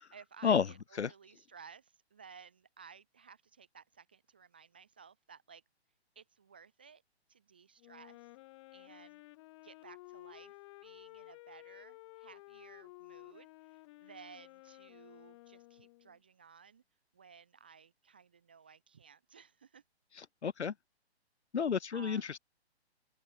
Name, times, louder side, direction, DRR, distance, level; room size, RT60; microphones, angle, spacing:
voice 1, 0.0-5.6 6.2-7.0 7.3-8.3 8.7-9.2 9.6-10.6 10.8-16.8 17.1-19.8 21.9-22.4, right 6 dB, 10° right, 0.4 m, -57 dB
Wind instrument woodwind instrument, 7.8-16.2, left 20 dB, 25° left, 1.6 m, -54 dB
voice 2, 20.4-20.7 21.5-22.4, left 6 dB, 85° left, 0.6 m, -30 dB
open air
figure-of-eight pair, 130°, 33 cm